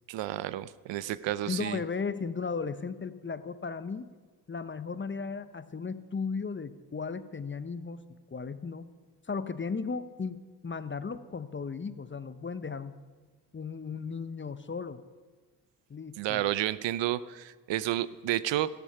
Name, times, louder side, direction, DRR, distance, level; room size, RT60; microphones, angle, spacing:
voice 1, 0.1-1.8 16.2-18.7, right 13 dB, 65° right, 16 dB, 0.7 m, -31 dB
voice 2, 1.5-4.1 4.5-8.0 8.3-8.9 9.3-12.9 13.5-15.0 15.9-16.4, left 5 dB, 25° left, 13 dB, 0.8 m, -36 dB
13.5 x 12.0 x 5.8 m, 1.4 s
hypercardioid pair, 50°, 47 cm